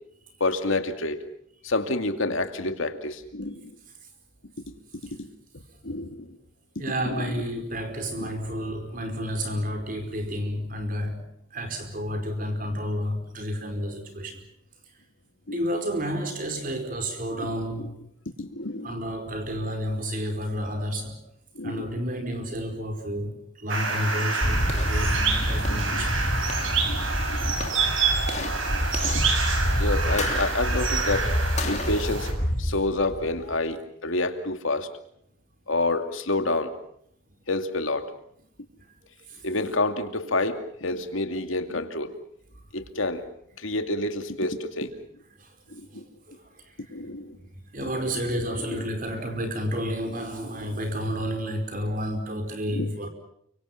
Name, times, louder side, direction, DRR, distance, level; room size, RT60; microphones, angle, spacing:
voice 1, 0.4-1.2 1.6-3.7 5.2-5.3 5.8-6.3 7.1-7.3 8.2-8.3 15.5-15.6 17.4-17.9 18.4-18.9 21.6-22.0 25.7-26.0 26.8-27.5 28.4-28.8 29.8-31.3 31.7-32.3 32.6-34.9 35.7-36.7 37.5-38.1 39.4-42.1 42.7-43.2 43.6-44.9 45.7-46.0 46.9-47.4 47.8-47.9 48.7-48.8 52.7-52.9, left 2 dB, 75° left, 2.4 m, -28 dB
voice 2, 6.8-14.4 15.5-17.9 18.8-21.1 21.6-26.3 39.3-39.4 46.3-46.4 47.7-53.1, equal, 40° right, 4.9 m, -30 dB
sound 1, 23.7-32.3, right 4 dB, 70° right, 6.2 m, -28 dB
sound 2, 24.4-33.5, equal, 35° left, 3.1 m, -27 dB
29.5 x 25.0 x 5.8 m
head